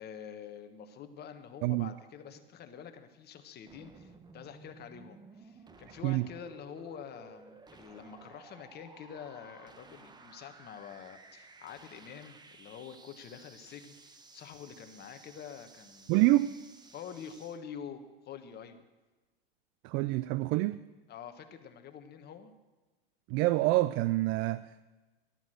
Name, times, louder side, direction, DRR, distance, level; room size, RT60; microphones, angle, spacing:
voice 1, 0.0-16.2 16.9-18.8 21.1-22.5, left 7 dB, 35° left, 1.4 m, -47 dB
voice 2, 1.6-1.9 6.0-6.3 16.1-16.5 19.8-20.8 23.3-24.8, right 18 dB, 40° right, 0.4 m, -27 dB
sound 1, 3.7-17.6, right 3 dB, 15° right, 1.0 m, -56 dB
13.5 x 12.0 x 6.4 m
hypercardioid pair, 105°, 29 cm